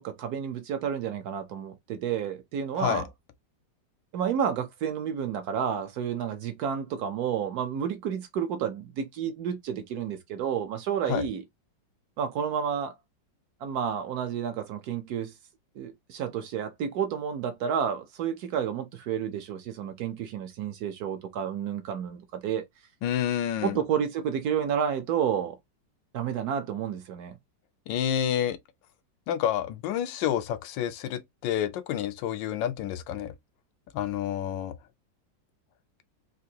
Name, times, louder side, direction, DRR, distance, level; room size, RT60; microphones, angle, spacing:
voice 1, 0.0-3.1 4.1-11.4 12.2-12.9 13.6-15.3 15.8-22.6 23.6-25.6 26.1-27.4, right 8 dB, 70° right, 1.0 m, -30 dB
voice 2, 23.0-23.8 27.9-28.6 29.3-33.3 33.9-34.7, left 10 dB, 90° left, 1.3 m, -29 dB
3.7 x 2.5 x 2.7 m
omnidirectional pair, 1.9 m